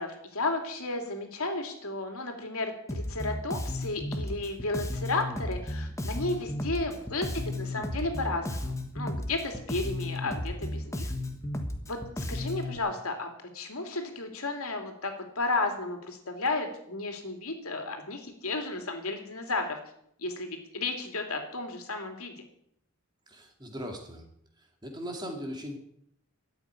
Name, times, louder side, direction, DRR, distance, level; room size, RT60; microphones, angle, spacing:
voice 1, 0.0-11.1 11.9-19.8 20.2-22.3, left 2 dB, 75° left, 4 dB, 2.9 m, -33 dB
Bass guitar, 2.9-12.8, left 1 dB, 15° left, 1.4 m, -34 dB
voice 2, 23.3-24.3 24.6-25.8, equal, 20° right, 3 dB, 2.5 m, -39 dB
13.0 x 8.6 x 9.6 m, 0.70 s
head